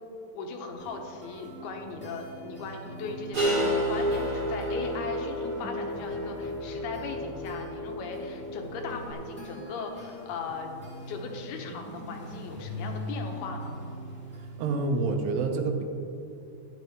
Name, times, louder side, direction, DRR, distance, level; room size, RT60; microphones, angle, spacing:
voice 1, 0.3-10.8 11.1-13.8, left 4 dB, 80° left, 3 dB, 2.8 m, -38 dB
sound 1, 0.8-15.0, equal, 5° left, 0.8 m, -42 dB
sound 2, 3.3-9.1, equal, 40° right, 2.5 m, -31 dB
voice 2, 14.6-15.8, right 3 dB, 85° right, 4 dB, 3.1 m, -27 dB
14.5 x 10.5 x 3.1 m, 2.7 s
omnidirectional pair, 4.7 m